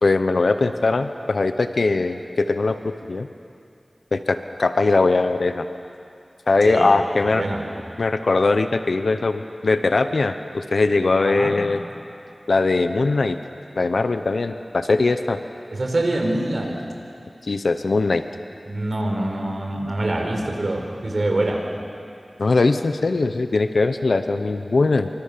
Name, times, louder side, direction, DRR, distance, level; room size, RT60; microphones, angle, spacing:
voice 1, 0.0-3.3 4.1-5.7 6.5-7.4 8.0-11.8 12.5-13.4 13.8-15.4 17.4-18.2 22.4-25.1, left 3 dB, 80° left, 9 dB, 1.0 m, -20 dB
voice 2, 7.2-7.6 11.2-11.6 15.7-16.8 18.7-21.6, right 1 dB, 60° right, 2 dB, 4.6 m, -25 dB
27.0 x 25.0 x 6.9 m, 2.4 s
wide cardioid pair, 65°, 0 cm